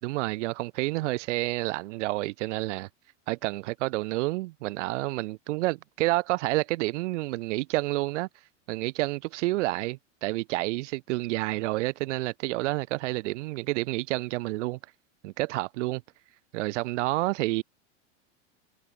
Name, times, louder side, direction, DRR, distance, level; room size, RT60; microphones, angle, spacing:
voice 1, 0.0-2.9 3.3-8.3 8.7-14.8 15.2-16.0 16.5-17.6, right 20 dB, 70° right, 2.8 m, -29 dB
supercardioid pair, 125°, 37 cm